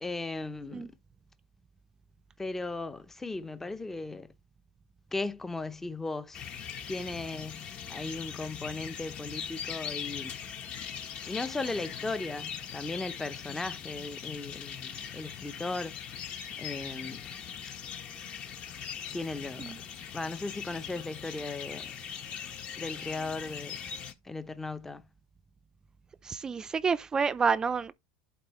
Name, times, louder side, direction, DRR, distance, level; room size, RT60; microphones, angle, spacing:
voice 1, 0.0-0.9 2.4-4.3 5.1-6.4 6.9-10.4 11.3-16.3 16.6-17.3 19.1-19.7 20.1-21.9 22.8-23.8 24.2-25.0, left 3 dB, 10° left, 0.7 m, -37 dB
sound 1, 6.3-24.1, left 8 dB, 45° left, 1.3 m, -41 dB
voice 2, 26.2-27.9, right 5 dB, 20° right, 0.5 m, -29 dB
11.0 x 4.1 x 3.1 m
supercardioid pair, 105°, 3 cm